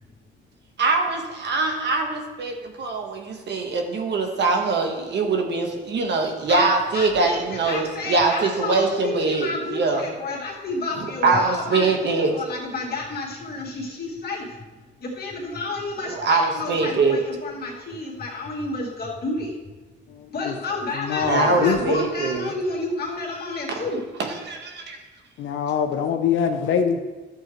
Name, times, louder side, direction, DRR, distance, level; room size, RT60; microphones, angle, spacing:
voice 1, 0.8-10.1 11.0-12.4 16.0-17.2 21.2-22.5 23.7-23.9 24.2-25.0, right 3 dB, 60° right, 3 dB, 1.5 m, -23 dB
voice 2, 6.9-14.6 15.0-19.5 20.3-24.0, left 3 dB, 50° left, -3 dB, 2.5 m, -30 dB
voice 3, 20.1-20.5 20.9-21.8 25.4-27.0, left 7 dB, 75° left, 6 dB, 0.8 m, -23 dB
11.5 x 7.7 x 3.2 m, 1.3 s
cardioid pair, 90°, 20 cm